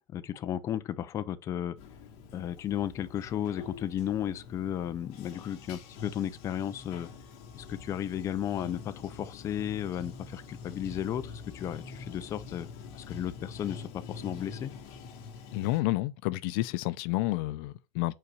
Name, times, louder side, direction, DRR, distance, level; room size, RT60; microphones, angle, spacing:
voice 1, 0.1-1.8 2.3-7.1 7.5-12.7 12.9-14.7, left 10 dB, 25° left, 0.4 m, -34 dB
Bathtub (filling or washing), 1.8-15.8, left 5 dB, 60° left, 1.5 m, -46 dB
voice 2, 15.5-18.2, left 18 dB, 90° left, 0.5 m, -30 dB
5.6 x 4.0 x 4.8 m
cardioid pair, 175°, 11 cm